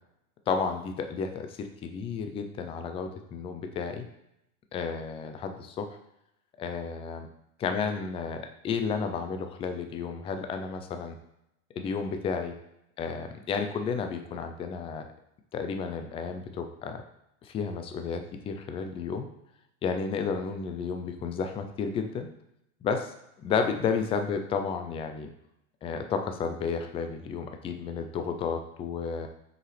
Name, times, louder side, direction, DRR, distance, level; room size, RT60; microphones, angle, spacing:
voice 1, 0.5-4.0 4.7-5.9 6.6-7.3 7.6-11.2 11.7-12.5 13.0-15.1 15.5-17.0 17.4-19.3 19.8-22.3 22.8-23.1 23.4-25.3 25.8-29.3, left 5 dB, 15° left, 6 dB, 0.4 m, -32 dB
6.1 x 4.9 x 3.2 m, 0.83 s
supercardioid pair, 130°, 40 cm